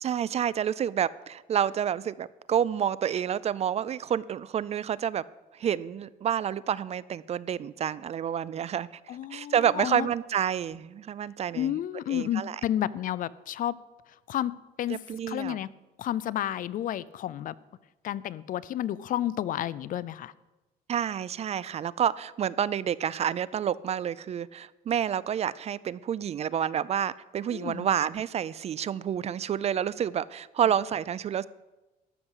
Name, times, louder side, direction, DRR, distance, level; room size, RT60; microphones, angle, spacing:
voice 1, 0.0-5.2 5.5-8.9 9.3-11.7 12.1-12.6 14.9-15.6 20.9-31.5, right 9 dB, 40° right, 20 dB, 0.4 m, -29 dB
voice 2, 9.1-10.1 11.5-13.7 14.3-14.5 14.8-15.0 15.3-15.7 16.0-17.5 18.0-20.3 27.5-27.9, left 11 dB, 55° left, 20 dB, 0.4 m, -31 dB
13.0 x 6.0 x 8.1 m, 1.1 s
cardioid pair, 110°, 17 cm